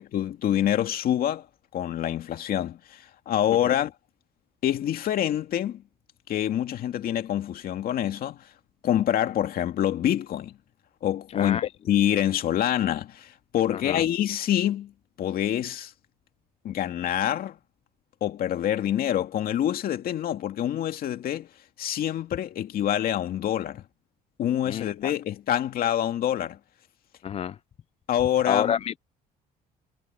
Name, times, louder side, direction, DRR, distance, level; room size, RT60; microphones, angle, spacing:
voice 1, 0.0-1.5 1.7-3.9 4.6-5.8 6.3-8.5 8.8-10.6 11.0-14.9 15.2-15.9 16.6-17.6 18.2-21.5 21.8-23.8 24.4-26.6 28.1-28.8, left 11 dB, 60° left, 2.3 m, -26 dB
voice 2, 11.3-11.7 13.7-14.0 24.7-25.1 27.2-27.6 28.5-29.0, left 8 dB, 40° left, 0.4 m, -28 dB
cardioid pair, 110°, 17 cm